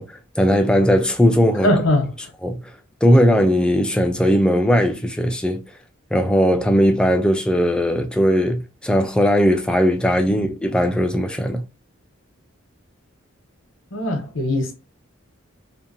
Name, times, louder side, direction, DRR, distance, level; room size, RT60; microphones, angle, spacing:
voice 1, 0.0-1.7 2.4-2.6 3.0-5.6 6.1-11.6, equal, 5° left, 0.3 m, -18 dB
voice 2, 1.6-2.1 13.9-14.7, left 1 dB, 65° left, 0.9 m, -20 dB
2.7 x 2.1 x 2.5 m
head